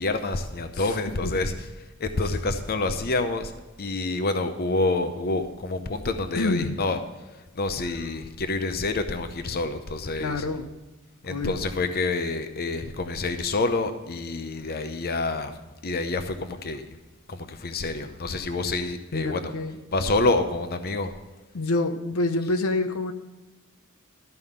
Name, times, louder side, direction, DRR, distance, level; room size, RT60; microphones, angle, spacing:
voice 1, 0.0-1.7 2.0-3.5 3.8-7.0 7.5-10.4 11.2-15.5 15.8-16.8 17.3-19.6 19.9-21.1, left 2 dB, 45° left, 8 dB, 0.7 m, -27 dB
voice 2, 6.3-6.8 10.2-10.7 11.3-11.6 19.1-19.8 21.5-23.1, left 2 dB, 75° left, 8 dB, 0.8 m, -27 dB
13.0 x 5.6 x 6.7 m, 1.1 s
head